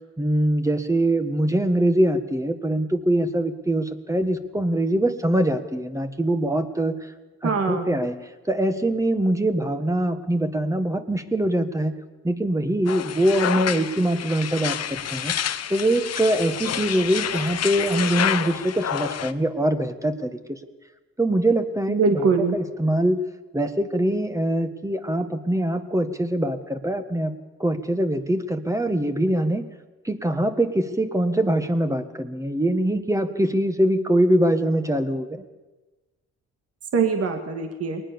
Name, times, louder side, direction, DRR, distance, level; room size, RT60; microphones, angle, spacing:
voice 1, 0.2-7.0 7.4-8.2 8.5-12.0 12.2-15.3 15.7-20.6 21.2-23.2 23.5-27.3 27.6-29.6 30.0-35.4, right 1 dB, 10° right, 8 dB, 1.7 m, -23 dB
voice 2, 7.4-8.0 21.9-22.6 36.9-38.0, right 5 dB, 50° right, 5 dB, 2.3 m, -22 dB
sound 1, 12.9-19.3, left 9 dB, 55° left, 1.1 m, -28 dB
22.0 x 19.5 x 7.1 m, 1.2 s
cardioid pair, 90°, 30 cm